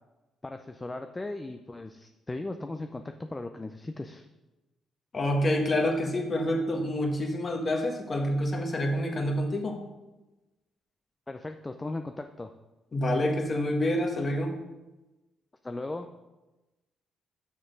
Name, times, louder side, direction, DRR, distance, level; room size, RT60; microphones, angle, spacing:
voice 1, 0.4-4.3 11.3-12.5 15.6-16.1, left 2 dB, 20° left, 6 dB, 0.4 m, -37 dB
voice 2, 5.1-9.8 12.9-14.6, left 1 dB, 35° left, 3 dB, 1.3 m, -27 dB
6.2 x 6.0 x 5.2 m, 1.1 s
cardioid pair, 90°, 0 cm